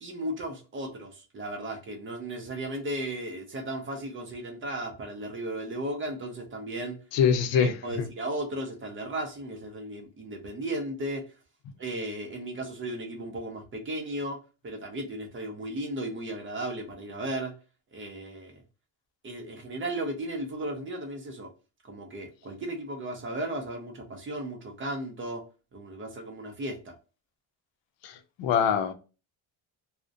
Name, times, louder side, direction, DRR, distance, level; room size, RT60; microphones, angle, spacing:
voice 1, 0.0-7.0 7.5-11.3 11.8-17.5 17.9-18.6 19.2-21.5 21.8-25.4 25.7-27.0, right 1 dB, 25° right, 0.4 m, -35 dB
voice 2, 7.1-7.7 28.0-28.1 28.4-28.9, left 7 dB, 65° left, 0.5 m, -23 dB
2.4 x 2.1 x 2.5 m
cardioid pair, 165°, 48 cm